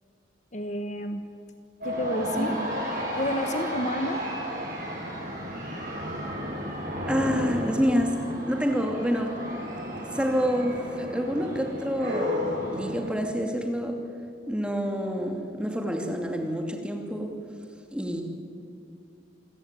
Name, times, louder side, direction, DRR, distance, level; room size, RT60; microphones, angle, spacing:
voice 1, 0.5-1.2 1.8-2.5 3.2-4.2, left 1 dB, 40° left, 7 dB, 1.2 m, -30 dB
sound 1, 1.8-13.1, equal, 50° right, 7.9 m, -33 dB
voice 2, 2.3-2.7 7.1-8.2 8.4-9.3 10.1-14.0 14.5-17.3 17.9-18.2, equal, 5° right, 2 dB, 2.5 m, -27 dB
27.0 x 16.5 x 9.0 m, 2.5 s
head